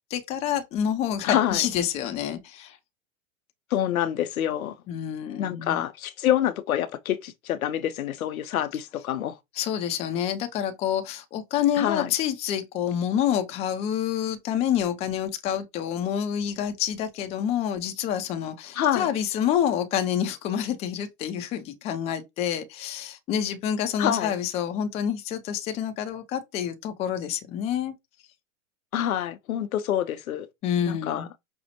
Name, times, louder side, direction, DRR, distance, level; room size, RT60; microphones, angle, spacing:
voice 1, 0.1-2.8 4.9-5.8 9.6-27.9 30.6-31.3, left 9 dB, 15° left, 0.4 m, -28 dB
voice 2, 1.2-1.6 3.7-4.8 5.4-9.4 11.8-12.1 18.7-19.1 24.0-24.3 28.9-30.5 30.8-31.3, left 11 dB, 85° left, 0.6 m, -26 dB
5.2 x 2.0 x 2.8 m
hypercardioid pair, 110°, 41 cm